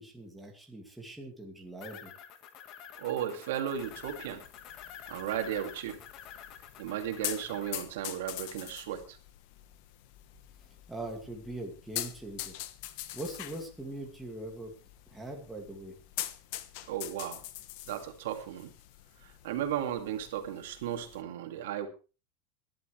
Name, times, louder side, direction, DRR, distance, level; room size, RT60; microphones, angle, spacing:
voice 1, 0.0-2.1 10.6-12.6 13.1-14.7 15.1-16.0, right 1 dB, 5° right, 0 dB, 2.3 m, -42 dB
sound 1, 1.8-7.7, left 9 dB, 35° left, 1.6 m, -48 dB
voice 2, 3.0-4.4 5.1-6.0 6.8-9.2 16.9-17.4 17.9-18.7 19.2-21.9, right 10 dB, 75° right, 5 dB, 2.5 m, -35 dB
sound 2, 3.7-21.2, left 14 dB, 50° left, 1.2 m, -44 dB
20.0 x 11.5 x 3.3 m, 0.34 s
supercardioid pair, 175°, 0 cm